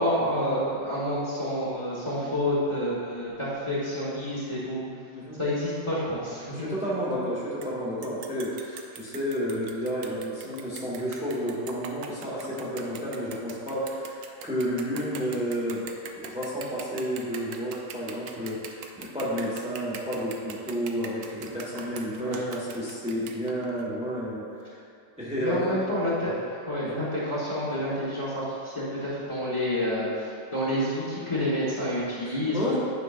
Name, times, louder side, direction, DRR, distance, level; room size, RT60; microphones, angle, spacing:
voice 1, 0.0-4.8 5.4-6.7 22.2-22.5 25.4-32.6, equal, 25° left, -9 dB, 1.5 m, -29 dB
voice 2, 6.5-24.8 25.2-25.8 26.3-26.4 26.8-27.0 32.2-32.7, equal, 5° right, -7 dB, 1.5 m, -31 dB
sound 1, 7.6-7.7 8.0-23.9, right 6 dB, 80° right, 1.0 m, -42 dB
10.5 x 5.9 x 2.6 m, 2.3 s
omnidirectional pair, 1.4 m